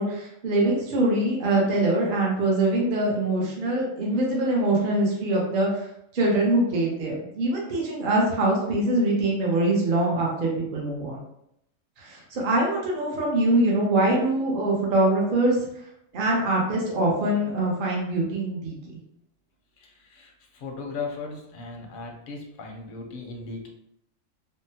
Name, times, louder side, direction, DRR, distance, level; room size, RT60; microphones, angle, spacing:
voice 1, 0.0-5.9 6.1-11.2 12.0-15.6 16.1-18.8, right 1 dB, 50° right, -3 dB, 0.8 m, -23 dB
voice 2, 19.8-23.7, left 4 dB, 55° left, 2 dB, 0.6 m, -37 dB
3.6 x 2.0 x 2.7 m, 0.76 s
omnidirectional pair, 1.3 m